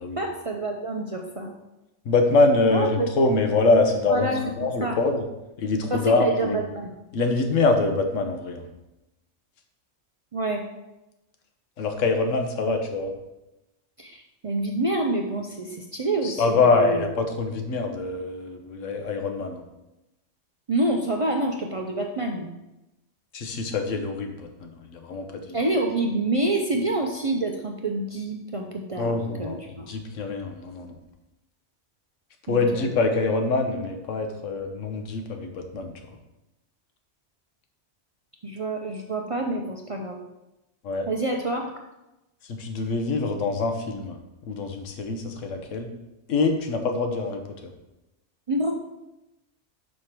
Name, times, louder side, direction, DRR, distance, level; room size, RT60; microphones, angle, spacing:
voice 1, 0.2-1.5 2.7-3.1 4.1-5.0 5.9-7.0 10.3-10.6 12.7-12.8 14.0-17.1 20.7-22.5 25.5-29.9 32.5-32.9 38.4-40.2 41.1-41.7 48.5-48.7, right 2 dB, 45° right, 1 dB, 0.4 m, -27 dB
voice 2, 2.0-4.3 4.6-5.2 5.6-6.6 7.1-8.6 11.8-13.1 16.2-19.6 23.3-25.6 29.0-29.6 29.9-30.9 32.5-35.9 40.8-41.1 42.5-44.2 44.5-45.9 46.3-47.7, left 3 dB, 85° left, 5 dB, 1.2 m, -24 dB
5.3 x 4.8 x 5.8 m, 0.96 s
omnidirectional pair, 1.3 m